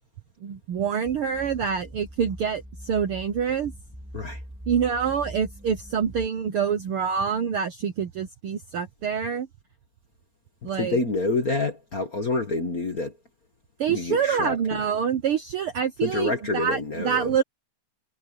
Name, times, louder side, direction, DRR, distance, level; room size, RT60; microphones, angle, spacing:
voice 1, 0.4-3.7 4.7-9.5 10.6-11.0 13.8-17.4, right 7 dB, 65° right, 1.4 m, -26 dB
sound 1, 1.0-6.3, equal, 5° right, 2.6 m, -42 dB
voice 2, 10.6-13.2 13.9-14.8 16.0-17.4, left 3 dB, 40° left, 1.5 m, -27 dB
omnidirectional pair, 3.6 m